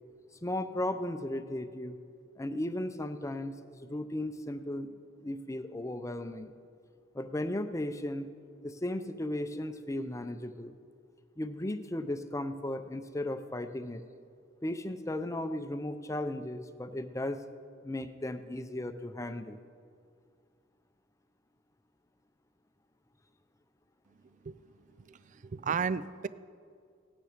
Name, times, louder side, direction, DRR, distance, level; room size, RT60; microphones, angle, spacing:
voice 1, 0.4-2.0 2.4-4.9 5.2-6.5 7.1-8.3 8.6-10.8 11.4-14.0 14.6-17.4 17.8-19.6, left 1 dB, 15° left, 9 dB, 0.6 m, -36 dB
voice 2, 25.0-26.3, right 6 dB, 40° right, 17 dB, 0.4 m, -34 dB
17.5 x 9.5 x 5.0 m, 2.2 s
head